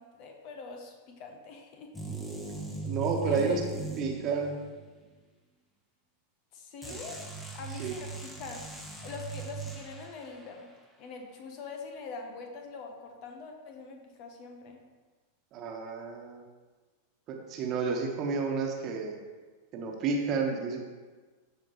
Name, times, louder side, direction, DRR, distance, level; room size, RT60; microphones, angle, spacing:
voice 1, 0.0-1.9 3.2-3.6 6.5-7.3 7.5-8.6 9.0-10.7 11.0-14.8, left 4 dB, 45° left, 3 dB, 1.1 m, -44 dB
sound 1, 1.9-4.8 6.8-10.3, right 4 dB, 10° left, 1.3 m, -39 dB
voice 2, 2.8-3.6 4.0-4.6 6.9-7.0 7.8-7.9 15.5-16.4 17.3-19.2 19.7-20.8, right 4 dB, 35° right, 1 dB, 1.3 m, -31 dB
14.0 x 4.9 x 3.1 m, 1.3 s
figure-of-eight pair, 90°, 0 cm